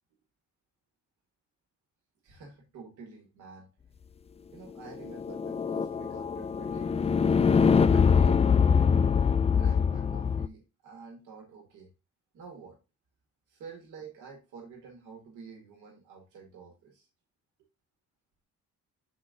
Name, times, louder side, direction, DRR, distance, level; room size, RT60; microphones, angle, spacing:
voice 1, 2.2-3.7 4.5-7.0 7.6-8.4 9.5-11.9 12.3-12.8 13.5-17.1, right 5 dB, 85° right, 0 dB, 2.0 m, -49 dB
sound 1, 4.9-10.5, left 6 dB, 20° left, 0.3 m, -24 dB
6.3 x 4.2 x 3.8 m, 0.29 s
cardioid pair, 90°, 30 cm